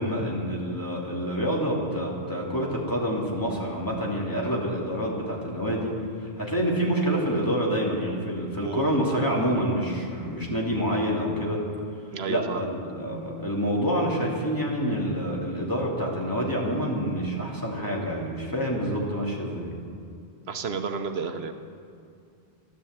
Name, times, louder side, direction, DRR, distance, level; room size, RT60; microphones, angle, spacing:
voice 1, 0.0-5.9 6.2-11.6 12.3-19.7, equal, 20° left, -4 dB, 2.7 m, -27 dB
voice 2, 12.1-12.6 20.5-21.5, right 5 dB, 80° right, 7 dB, 1.1 m, -31 dB
13.5 x 11.0 x 8.0 m, 2.4 s
omnidirectional pair, 1.1 m